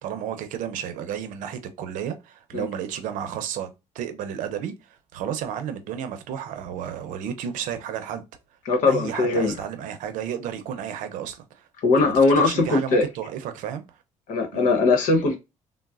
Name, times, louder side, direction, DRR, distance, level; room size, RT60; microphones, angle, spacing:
voice 1, 0.0-3.7 3.9-8.2 8.9-11.7 12.0-13.8 14.5-14.7, right 9 dB, 85° right, 0.6 m, -32 dB
voice 2, 8.7-9.5 11.8-13.0 14.3-15.4, left 3 dB, 80° left, 0.9 m, -20 dB
3.9 x 2.1 x 2.3 m
cardioid pair, 110°, 13 cm